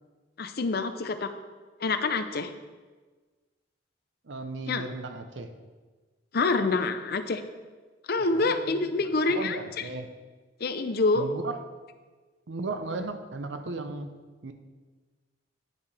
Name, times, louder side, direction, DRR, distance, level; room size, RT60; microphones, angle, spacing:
voice 1, 0.4-1.3 1.8-2.5 4.7-4.8 6.3-7.4 8.1-9.9 10.6-11.3, left 3 dB, 55° left, 9 dB, 0.6 m, -26 dB
voice 2, 4.2-5.5 8.2-10.1 11.1-11.6 12.5-14.1 14.4-14.5, right 3 dB, 75° right, 8 dB, 0.7 m, -36 dB
9.3 x 8.4 x 3.4 m, 1.3 s
head